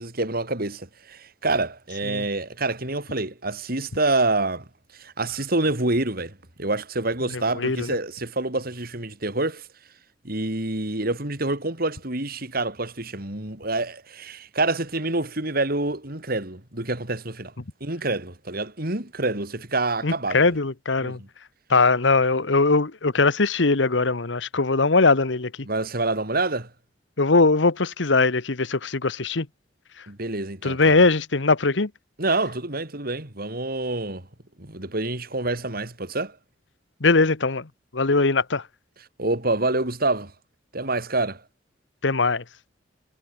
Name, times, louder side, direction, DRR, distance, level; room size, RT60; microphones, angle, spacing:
voice 1, 0.0-4.7 4.9-9.7 10.2-17.5 17.8-20.5 21.0-21.3 25.6-26.7 30.1-31.0 32.2-34.3 34.6-36.4 39.2-40.3 40.7-41.4, right 2 dB, 55° right, 4.3 m, -27 dB
voice 2, 7.5-8.0 20.0-21.2 21.7-25.5 27.2-29.5 30.6-31.9 37.0-37.7 37.9-38.6 42.0-42.4, left 3 dB, 75° left, 1.2 m, -20 dB
head